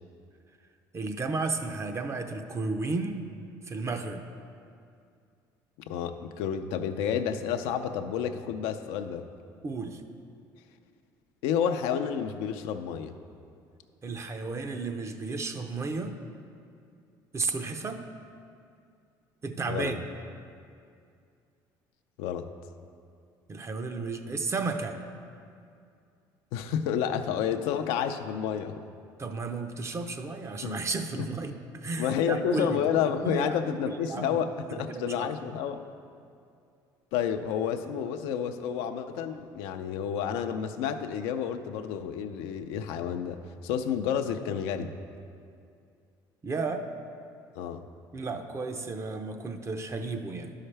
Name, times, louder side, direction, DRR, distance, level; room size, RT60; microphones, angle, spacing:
voice 1, 0.9-3.3 3.6-4.2 9.6-10.0 14.0-16.2 17.3-18.1 19.4-20.0 23.5-25.0 29.2-34.4 34.7-35.6 46.4-46.9 48.1-50.5, right 3 dB, 30° right, 6 dB, 0.6 m, -33 dB
voice 2, 5.9-9.2 11.4-13.1 19.7-19.9 22.2-22.4 26.5-28.7 30.6-30.9 31.2-31.3 32.0-35.8 37.1-43.4 43.6-44.9 47.6-47.8, left 8 dB, 80° left, 7 dB, 0.5 m, -30 dB
11.5 x 5.6 x 3.3 m, 2.4 s
supercardioid pair, 85°, 9 cm